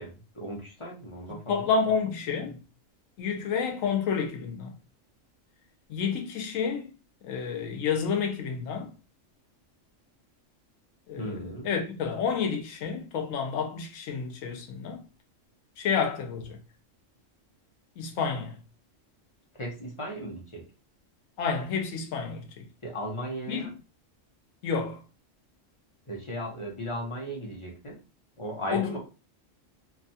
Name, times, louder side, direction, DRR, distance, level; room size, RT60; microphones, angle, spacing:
voice 1, 0.0-1.8 11.2-11.7 19.5-20.6 22.8-23.7 26.1-28.0 28.4-29.0, equal, 30° left, 0.7 m, -36 dB
voice 2, 1.5-2.6 3.2-4.7 5.9-6.9 7.2-8.9 11.1-15.0 15.8-16.6 18.0-18.6 21.4-22.6 23.5-23.7 24.6-25.0 28.7-29.0, left 6 dB, 85° left, 1.0 m, -29 dB
2.9 x 2.3 x 2.7 m
omnidirectional pair, 1.3 m